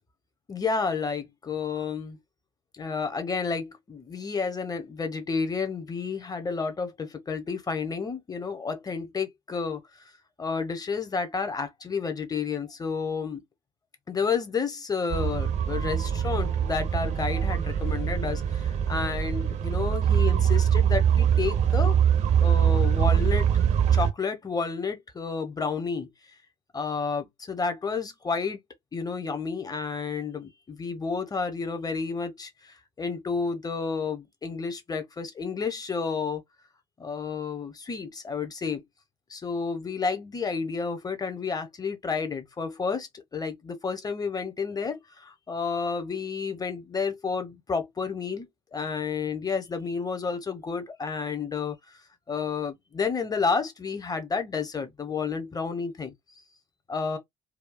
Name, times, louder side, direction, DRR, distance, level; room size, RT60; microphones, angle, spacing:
voice 1, 0.5-2.2 2.7-9.8 10.4-13.4 14.1-22.0 22.4-23.6 23.9-26.1 26.7-28.6 28.9-36.4 37.0-38.8 39.3-52.0 52.3-56.1 56.9-57.2, left 5 dB, 25° left, 1.1 m, -31 dB
sound 1, 15.1-24.1, right 8 dB, 50° right, 0.8 m, -23 dB
4.6 x 2.3 x 2.4 m
figure-of-eight pair, 50°, 15 cm